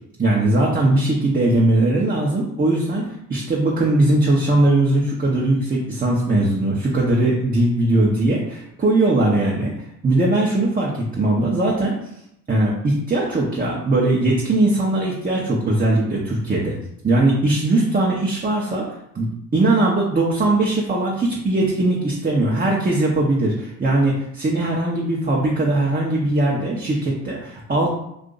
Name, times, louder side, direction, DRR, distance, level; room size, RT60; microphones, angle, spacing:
voice 1, 0.2-9.7 10.0-11.9 12.5-16.8 17.0-18.9 19.1-19.3 19.5-27.9, right 2 dB, 20° right, -4 dB, 0.8 m, -20 dB
2.7 x 2.5 x 3.9 m, 0.78 s
hypercardioid pair, 55°, 41 cm